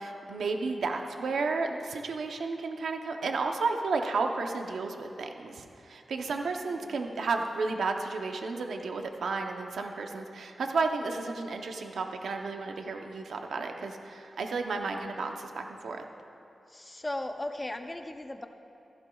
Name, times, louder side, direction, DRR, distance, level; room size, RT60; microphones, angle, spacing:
voice 1, 0.0-16.0, right 4 dB, 90° right, 4 dB, 0.7 m, -32 dB
voice 2, 6.7-7.0 16.7-18.5, left 1 dB, 15° left, 6 dB, 0.6 m, -37 dB
16.0 x 15.0 x 2.3 m, 2.9 s
wide cardioid pair, 150°, 0 cm